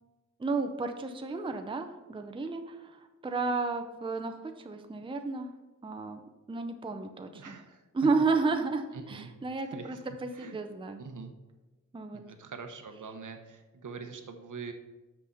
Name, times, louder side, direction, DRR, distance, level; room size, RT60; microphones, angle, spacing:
voice 1, 0.4-5.5 5.8-6.2 6.5-7.6 7.9-11.0 11.9-12.2, right 4 dB, 15° right, 6 dB, 0.5 m, -32 dB
voice 2, 7.3-8.1 8.9-9.3 9.7-10.0 10.3-10.6 11.0-11.3 12.1-14.7, right 5 dB, 70° right, 6 dB, 1.0 m, -44 dB
6.3 x 5.9 x 5.6 m, 1.2 s
wide cardioid pair, 160°, 32 cm